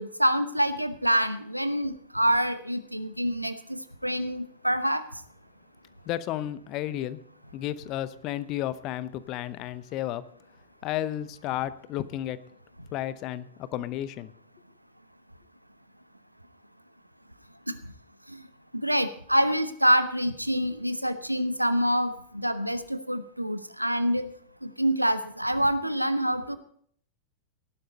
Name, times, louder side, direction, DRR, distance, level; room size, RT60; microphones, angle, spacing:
voice 1, 0.0-5.0 18.8-24.3 24.6-26.6, equal, 90° right, 12 dB, 0.9 m, -26 dB
voice 2, 6.1-7.2 7.5-10.2 10.8-12.4 12.9-14.3, left 13 dB, 40° left, 16 dB, 0.7 m, -32 dB
17.5 x 11.5 x 4.1 m, 0.62 s
figure-of-eight pair, 90°, 0 cm